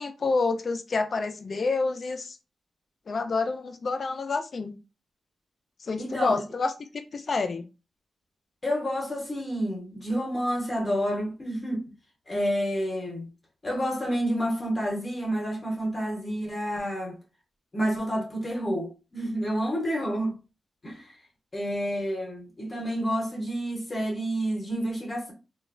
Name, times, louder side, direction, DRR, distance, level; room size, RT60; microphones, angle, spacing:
voice 1, 0.0-2.4 3.1-4.8 5.8-7.6, left 3 dB, 45° left, 0.4 m, -28 dB
voice 2, 6.0-6.4 8.6-11.9 12.3-13.3 13.6-17.2 17.7-20.4 20.8-21.1 21.5-25.3, equal, 25° left, 0.8 m, -29 dB
3.0 x 2.2 x 2.4 m
wide cardioid pair, 145°, 0 cm